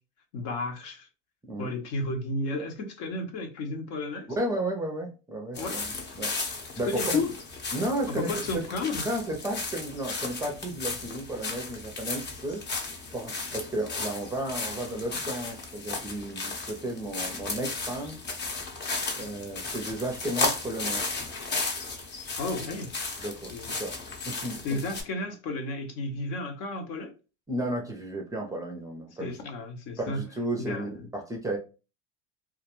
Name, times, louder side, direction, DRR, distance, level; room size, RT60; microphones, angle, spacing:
voice 1, 0.3-1.1 1.6-4.3 5.6-5.8 6.8-7.3 8.1-9.1 22.4-22.9 23.5-23.7 24.6-27.1 29.2-30.2 30.6-30.9, left 2 dB, 65° left, 0.8 m, -32 dB
voice 2, 4.4-6.3 6.8-7.0 7.7-8.6 9.0-12.6 13.1-18.2 19.2-21.0 23.2-24.0 24.3-24.8 27.5-29.3 30.0-31.6, right 1 dB, 10° right, 0.4 m, -33 dB
sound 1, 5.6-25.0, left 3 dB, 30° left, 0.7 m, -35 dB
2.3 x 2.1 x 2.8 m
supercardioid pair, 110°, 36 cm